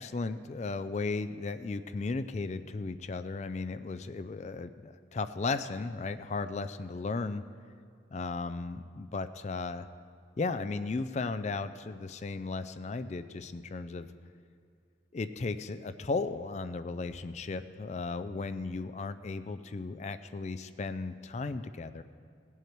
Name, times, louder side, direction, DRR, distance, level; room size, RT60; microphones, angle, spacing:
voice 1, 0.0-7.4 8.1-9.9 10.4-14.1 15.1-22.0, left 3 dB, 35° left, 11 dB, 0.3 m, -35 dB
18.5 x 8.0 x 4.6 m, 2.3 s
head